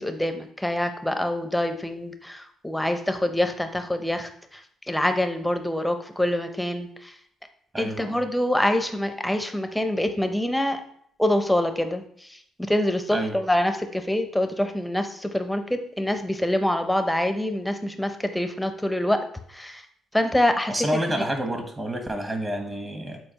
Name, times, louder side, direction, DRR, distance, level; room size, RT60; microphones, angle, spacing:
voice 1, 0.0-4.6 4.9-7.1 7.8-10.8 11.2-12.3 12.6-19.2 19.5-19.8 20.1-20.9, left 1 dB, 5° left, 7 dB, 0.7 m, -25 dB
voice 2, 7.7-8.2 13.1-13.3 20.7-23.2, equal, 25° right, 4 dB, 1.4 m, -28 dB
7.7 x 4.2 x 3.0 m, 0.65 s
cardioid pair, 90°, 0 cm